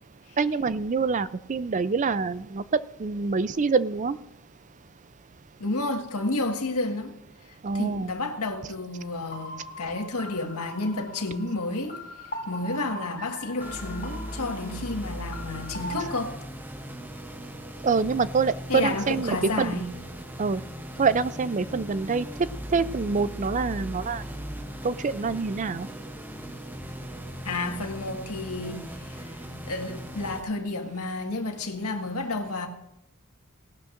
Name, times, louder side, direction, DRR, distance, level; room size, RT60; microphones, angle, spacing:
voice 1, 0.4-2.6 3.0-4.2 7.6-8.1 17.8-19.9 20.4-20.6 21.0-22.2 22.7-24.2 24.8-25.9, right 4 dB, 35° right, 15 dB, 0.4 m, -26 dB
voice 2, 5.6-7.2 7.7-16.3 18.7-19.9 27.4-32.7, left 2 dB, 90° left, 3 dB, 1.6 m, -31 dB
sound 1, 9.3-16.2, left 1 dB, 40° left, 2.1 m, -41 dB
sound 2, 13.6-30.4, equal, 10° right, 0.8 m, -38 dB
18.0 x 12.0 x 2.6 m, 0.89 s
head